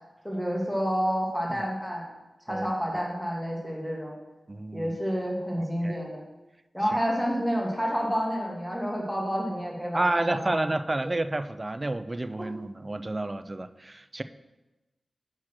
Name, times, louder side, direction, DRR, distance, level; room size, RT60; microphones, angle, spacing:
voice 1, 0.2-2.1 2.5-4.1 4.7-6.2 6.7-10.6 11.0-11.1 12.4-12.5, equal, 5° left, -2 dB, 1.8 m, -29 dB
voice 2, 4.5-4.9 5.8-6.0 9.9-14.2, right 2 dB, 25° right, 11 dB, 0.3 m, -30 dB
6.1 x 4.4 x 6.1 m, 1.1 s
wide cardioid pair, 90°, 0 cm